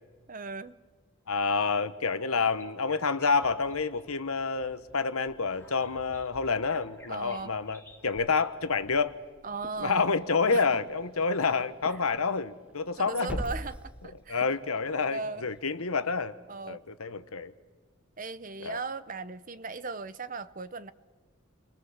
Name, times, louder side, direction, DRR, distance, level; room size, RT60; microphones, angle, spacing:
voice 1, 0.3-0.7 7.1-7.5 9.4-10.0 10.5-10.6 11.9-12.0 13.0-14.4 15.1-15.4 16.5-16.8 18.2-20.9, right 3 dB, 40° right, 0.7 m, -37 dB
voice 2, 1.3-9.2 9.8-13.4 14.3-16.3 16.6-17.5 18.6-18.8, left 4 dB, 85° left, 1.2 m, -28 dB
sound 1, 2.5-9.2, left 2 dB, 10° left, 1.9 m, -54 dB
Growling / Hiss, 4.9-15.6, equal, 5° right, 1.2 m, -46 dB
sound 2, 9.6-10.3 10.7-12.7 12.9-13.8 14.4-15.4 15.6-16.2, equal, 25° left, 1.8 m, -55 dB
29.5 x 23.5 x 7.3 m
head